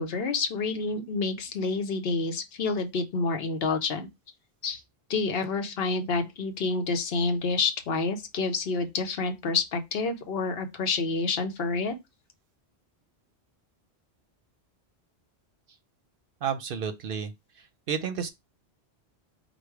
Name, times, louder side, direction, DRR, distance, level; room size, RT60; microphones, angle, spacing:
voice 1, 0.0-4.1 4.6-4.8 5.1-11.9, left 4 dB, 65° left, 0.9 m, -28 dB
voice 2, 16.4-17.3 17.9-18.3, right 7 dB, 65° right, 0.7 m, -30 dB
5.0 x 2.1 x 4.5 m
omnidirectional pair, 1.1 m